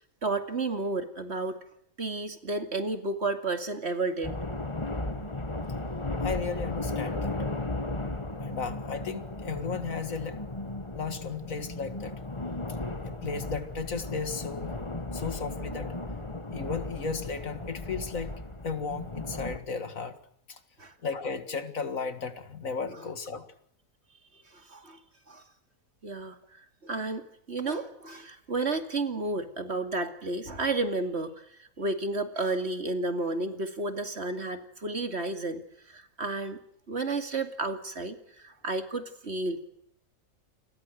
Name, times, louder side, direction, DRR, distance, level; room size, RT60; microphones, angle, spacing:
voice 1, 0.2-1.6 2.0-4.3 8.3-8.6 20.8-20.9 24.5-25.0 25.3-25.4 26.0-35.6 35.9-36.6 36.9-39.7, right 3 dB, 50° right, 7 dB, 2.7 m, -32 dB
sound 1, 4.2-19.6, left 2 dB, 20° left, 1.7 m, -35 dB
voice 2, 6.1-7.4 8.4-10.5 10.9-12.1 13.1-14.8 15.1-15.9 16.5-18.3 18.6-20.2 20.5-20.6 21.0-23.5, left 5 dB, 70° left, 10 dB, 2.3 m, -35 dB
29.5 x 22.5 x 6.5 m, 0.71 s
omnidirectional pair, 1.5 m